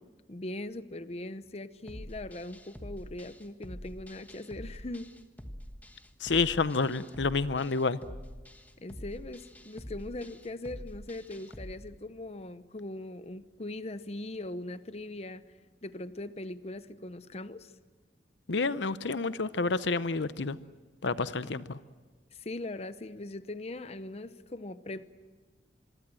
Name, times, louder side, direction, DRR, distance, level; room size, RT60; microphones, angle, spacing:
voice 1, 0.3-5.2 8.8-15.5 15.8-17.7 21.4-21.5 22.3-25.0, left 2 dB, 35° left, 13 dB, 0.8 m, -40 dB
sound 1, 1.9-11.7, equal, 10° left, 1.3 m, -46 dB
voice 2, 6.2-8.0 18.5-20.6 21.0-21.8, left 4 dB, 75° left, 14 dB, 0.8 m, -29 dB
27.0 x 23.0 x 7.7 m, 1.4 s
head